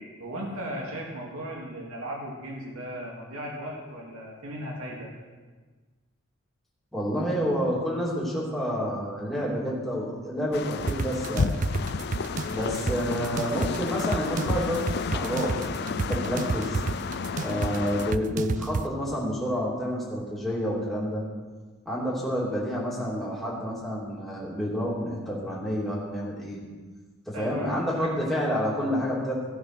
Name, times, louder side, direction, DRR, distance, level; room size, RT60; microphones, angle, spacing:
voice 1, 0.0-5.1 27.3-28.6, equal, 85° right, -2 dB, 2.5 m, -37 dB
voice 2, 6.9-11.5 12.5-14.8 15.1-16.8 17.4-21.2 21.8-26.6 27.3-29.6, equal, ahead, -7 dB, 3.0 m, -29 dB
sound 1, 10.5-18.1, left 5 dB, 50° left, 0.4 m, -31 dB
sound 2, 10.9-18.9, right 4 dB, 35° right, 0.4 m, -31 dB
16.5 x 6.2 x 6.2 m, 1.4 s
head